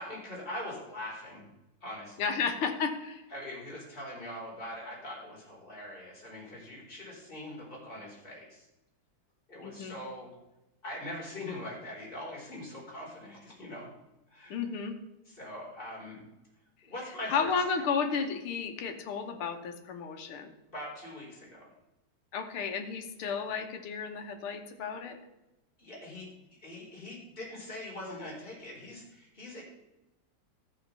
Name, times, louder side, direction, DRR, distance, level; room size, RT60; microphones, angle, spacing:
voice 1, 0.0-1.5 1.8-2.3 3.3-8.6 9.5-10.3 10.8-13.9 14.3-14.6 15.3-16.2 16.8-17.8 20.7-21.7 25.8-26.3 26.6-29.6, left 1 dB, 25° left, -4 dB, 4.3 m, -42 dB
voice 2, 2.2-3.2 9.6-10.0 14.5-15.0 17.3-20.5 22.3-25.2, left 5 dB, 85° left, 5 dB, 2.1 m, -33 dB
14.0 x 5.1 x 6.8 m, 0.96 s
omnidirectional pair, 2.3 m